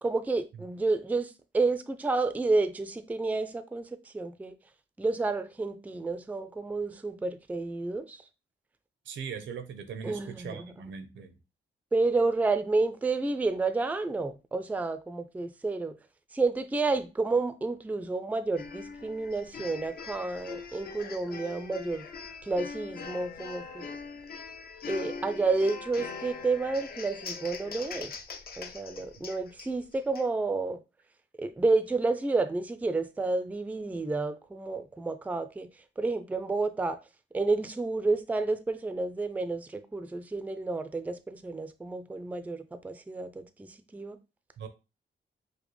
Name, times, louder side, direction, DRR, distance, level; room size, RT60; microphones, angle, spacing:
voice 1, 0.0-4.5 5.0-8.2 10.0-10.7 11.9-16.0 16.3-22.1 22.4-23.9 24.9-28.1 28.6-30.8 31.4-35.7 36.0-37.0 37.3-44.2, right 3 dB, 10° right, 0.4 m, -30 dB
voice 2, 9.1-11.4 44.6-44.7, right 6 dB, 85° right, 0.7 m, -40 dB
sound 1, 18.6-30.3, left 5 dB, 55° left, 0.5 m, -42 dB
5.0 x 2.0 x 3.1 m
cardioid pair, 95°, 19 cm